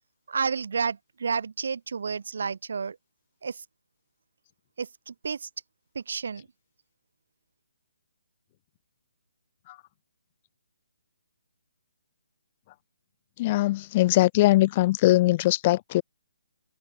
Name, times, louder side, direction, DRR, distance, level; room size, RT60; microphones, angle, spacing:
voice 1, 0.3-3.0 3.4-3.6 4.8-5.5 5.9-6.5, right 5 dB, 60° right, 0.8 m, -31 dB
voice 2, 13.4-16.0, left 17 dB, 20° left, 0.7 m, -21 dB
hypercardioid pair, 170°, 0 cm